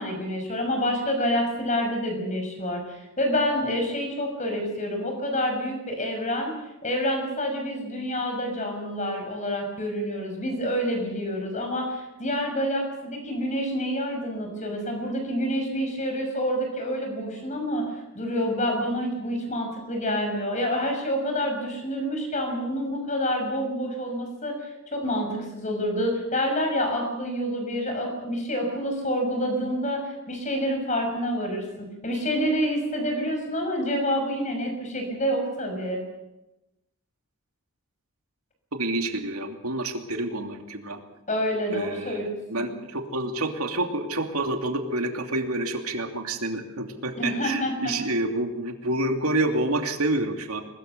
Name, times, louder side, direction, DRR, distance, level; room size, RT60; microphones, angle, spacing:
voice 1, 0.0-6.5 6.8-31.6 32.0-36.0 41.3-42.3 42.6-42.7 47.2-47.9, equal, 35° left, 3 dB, 6.0 m, -28 dB
voice 2, 38.7-41.0 41.7-42.2 42.5-50.6, right 2 dB, 85° right, 4 dB, 2.9 m, -28 dB
22.5 x 21.5 x 6.8 m, 0.94 s
head